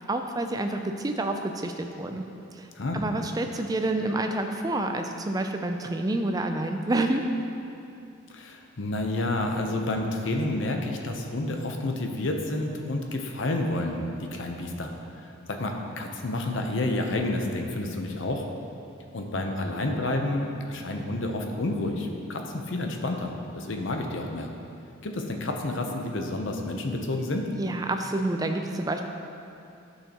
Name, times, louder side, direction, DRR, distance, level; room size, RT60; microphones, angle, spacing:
voice 1, 0.0-2.2 2.5-7.2 27.6-29.0, right 2 dB, 15° right, 5 dB, 0.4 m, -28 dB
voice 2, 2.8-3.1 8.3-18.4 19.1-24.5 25.0-27.5, left 2 dB, 60° left, 3 dB, 0.7 m, -30 dB
11.0 x 6.4 x 3.0 m, 2.6 s
head